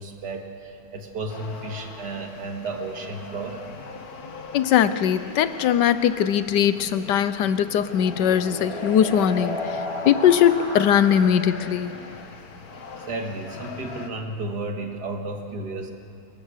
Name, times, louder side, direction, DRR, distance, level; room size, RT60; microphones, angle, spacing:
voice 1, 0.0-3.6 13.0-15.9, right 2 dB, 70° right, 3 dB, 2.4 m, -33 dB
sound 1, 1.3-14.1, left 4 dB, 60° left, 2.0 m, -40 dB
voice 2, 4.5-9.6 10.0-11.9, left 9 dB, 80° left, 13 dB, 1.4 m, -20 dB
sound 2, 7.5-12.0, left 1 dB, 20° right, 4.9 m, -34 dB
23.0 x 22.0 x 6.7 m, 2.4 s
omnidirectional pair, 1.8 m